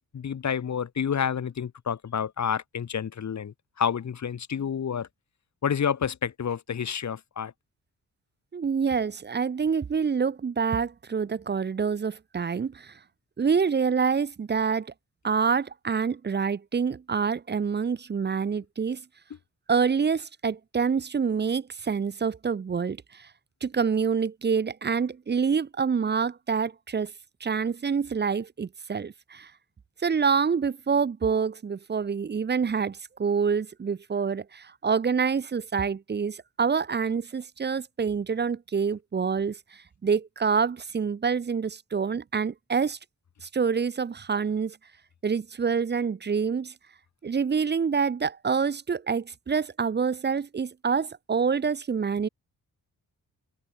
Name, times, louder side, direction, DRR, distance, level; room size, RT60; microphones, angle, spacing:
voice 1, 0.0-5.1 5.6-7.5, left 7 dB, 50° left, 1.2 m, -29 dB
voice 2, 8.5-12.9 13.4-14.9 15.2-19.0 19.7-23.0 23.6-27.1 27.4-29.5 30.0-39.6 40.0-43.0 43.4-44.8 45.2-46.7 47.2-52.3, right 6 dB, 30° right, 0.6 m, -26 dB
cardioid pair, 65°, 35 cm